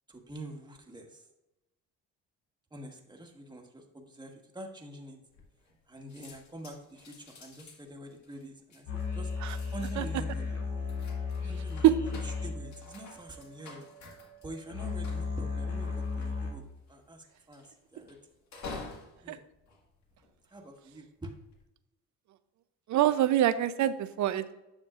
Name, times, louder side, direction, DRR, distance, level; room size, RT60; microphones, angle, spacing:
voice 1, 0.1-1.2 2.7-5.2 5.9-8.9 9.1-9.3 9.7-10.6 11.4-13.9 14.4-16.6 16.9-17.7 17.9-18.2 19.2-19.4 20.5-21.4, right 1 dB, 15° right, 2 dB, 1.5 m, -45 dB
sound 1, 5.3-5.8 6.1-20.6 21.2-21.6, left 3 dB, 65° left, 1.8 m, -50 dB
sound 2, 8.9-16.5, left 5 dB, 85° left, 2.7 m, -36 dB
voice 2, 22.9-24.5, right 12 dB, 70° right, 13 dB, 0.6 m, -25 dB
9.8 x 6.6 x 2.5 m, 0.95 s
cardioid pair, 90°, 30 cm